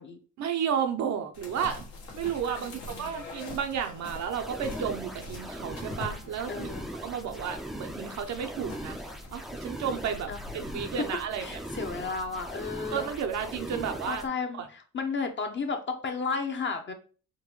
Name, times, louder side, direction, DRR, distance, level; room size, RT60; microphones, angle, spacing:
voice 1, 0.4-1.8 2.1-6.7 7.0-9.0 9.3-11.6 12.9-14.2 14.5-14.7, right 7 dB, 65° right, 6 dB, 0.7 m, -32 dB
sound 1, 1.3-11.0, left 3 dB, 75° left, 1.2 m, -44 dB
voice 2, 2.6-3.1 6.5-6.9 10.3-10.4 10.8-10.9 11.4-13.1 14.1-16.9, left 4 dB, 40° left, 5 dB, 0.7 m, -33 dB
sound 2, 4.3-14.3, equal, ahead, 0.4 m, -40 dB
3.8 x 2.2 x 3.0 m, 0.38 s
cardioid pair, 90°, 30 cm